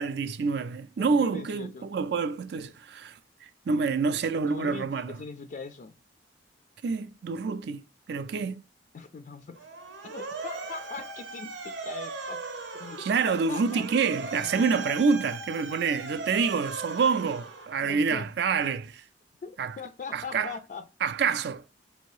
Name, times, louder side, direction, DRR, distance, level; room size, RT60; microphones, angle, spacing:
voice 1, 0.0-5.2 6.8-8.6 13.0-19.0 19.6-19.8 20.1-20.5 21.0-21.6, right 5 dB, 60° right, 0.4 m, -27 dB
voice 2, 1.0-1.9 4.4-5.9 8.3-8.5 8.9-9.7 10.0-12.4 12.7-13.8 14.4-14.7 17.8-18.3 19.4-20.8, left 5 dB, 45° left, 0.3 m, -41 dB
Motor vehicle (road) / Siren, 9.5-18.1, right 3 dB, 75° right, 0.7 m, -38 dB
5.2 x 2.7 x 3.0 m
head